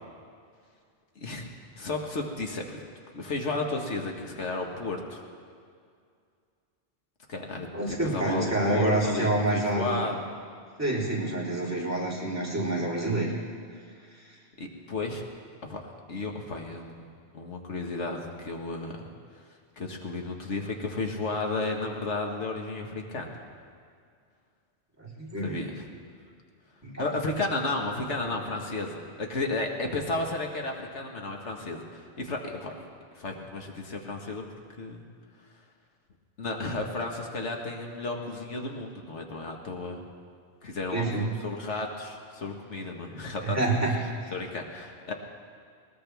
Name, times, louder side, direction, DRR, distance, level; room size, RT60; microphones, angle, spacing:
voice 1, 1.2-1.5 1.8-2.8 3.1-5.2 7.3-10.2 14.6-15.2 15.6-16.9 17.3-19.0 19.8-23.4 25.4-25.9 27.0-32.7 33.1-34.4 34.8-35.0 36.4-40.0 40.6-43.8 44.3-45.1, left 3 dB, 85° left, 2 dB, 1.8 m, -33 dB
voice 2, 7.7-10.0 10.8-13.3 14.2-14.3 25.0-25.6 26.8-27.1 40.9-41.3 43.4-43.9 44.2-44.3, right 2 dB, 15° right, -6 dB, 3.6 m, -27 dB
21.0 x 20.0 x 3.5 m, 2.2 s
omnidirectional pair, 1.2 m